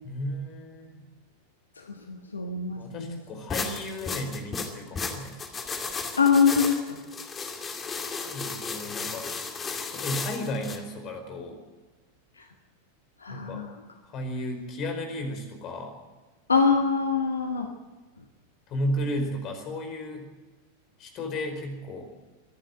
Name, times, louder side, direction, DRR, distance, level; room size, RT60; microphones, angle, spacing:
voice 1, 0.0-1.0 2.7-5.5 8.2-9.3 9.9-11.6 13.3-13.6 14.0-15.9 18.7-20.3 21.0-22.1, left 1 dB, 35° left, 6 dB, 4.8 m, -34 dB
voice 2, 1.8-3.2 6.2-7.0 12.4-12.5 13.2-13.8 16.5-17.7, left 5 dB, 75° left, 5 dB, 1.5 m, -24 dB
sound 1, 3.5-10.8, left 4 dB, 20° left, 2.4 m, -34 dB
24.5 x 11.5 x 9.2 m, 1.2 s
figure-of-eight pair, 90°, 0 cm